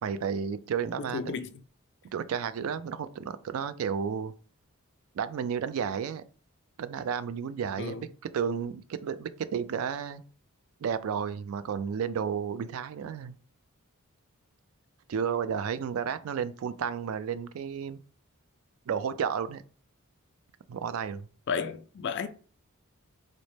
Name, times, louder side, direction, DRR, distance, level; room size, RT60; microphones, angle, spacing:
voice 1, 0.0-1.3 2.1-4.3 5.1-6.2 6.8-10.2 10.8-13.3 15.1-18.0 18.9-19.6 20.7-21.3, right 7 dB, 65° right, 0.3 m, -32 dB
voice 2, 1.0-1.6 7.8-8.1 21.5-22.3, left 6 dB, 50° left, 0.3 m, -33 dB
4.0 x 2.1 x 3.1 m
head